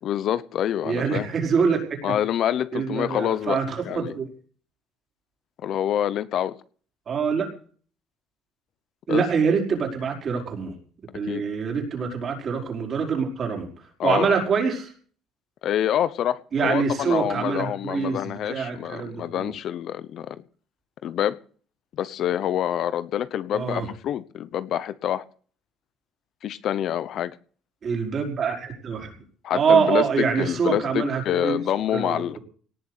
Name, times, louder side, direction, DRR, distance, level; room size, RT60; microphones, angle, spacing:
voice 1, 0.0-1.3 2.0-4.1 5.6-6.6 9.1-9.2 11.3-11.4 14.0-14.3 15.6-20.4 21.0-21.4 21.9-25.2 26.4-27.4 29.4-32.4, left 10 dB, 60° left, 0.9 m, -26 dB
voice 2, 0.8-1.8 2.0-2.1 2.7-4.3 7.1-7.5 9.1-10.7 11.1-13.7 14.0-14.9 16.5-19.5 23.5-23.9 27.8-29.2 29.5-31.6 31.9-32.4, right 6 dB, 40° right, 5.2 m, -25 dB
18.5 x 7.0 x 8.2 m
cardioid pair, 120°, 0 cm